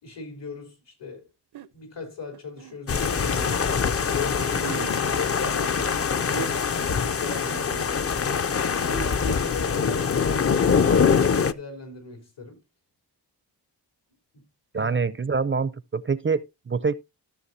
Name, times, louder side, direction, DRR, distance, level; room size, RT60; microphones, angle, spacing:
voice 1, 0.0-1.3 1.7-3.7 4.1-8.5 8.8-12.6 14.7-15.0, left 4 dB, 90° left, 3.8 m, -38 dB
sound 1, 1.5-1.7 2.3-3.6 4.3-4.9 5.9-6.0 6.3-6.8, right 12 dB, 75° right, 0.6 m, -39 dB
sound 2, 2.9-11.5, left 6 dB, 35° left, 0.4 m, -24 dB
voice 2, 14.7-16.9, right 5 dB, 30° right, 0.4 m, -25 dB
14.0 x 7.1 x 2.7 m
wide cardioid pair, 145°, 41 cm